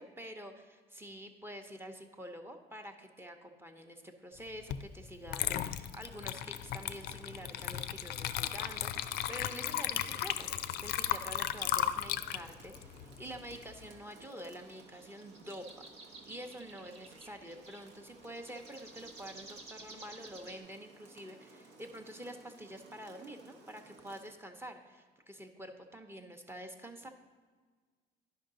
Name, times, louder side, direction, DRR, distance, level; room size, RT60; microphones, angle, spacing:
voice 1, 0.0-15.9 16.2-27.1, equal, 15° right, 5 dB, 0.7 m, -47 dB
Water / Liquid, 4.7-4.9 5.3-13.8, left 11 dB, 70° left, 0.4 m, -35 dB
Rain, 5.7-24.4, right 3 dB, 80° right, 1.1 m, -58 dB
sound 1, 13.3-20.6, right 2 dB, 40° right, 1.2 m, -54 dB
10.5 x 5.5 x 3.8 m, 1.5 s
cardioid pair, 110°, 17 cm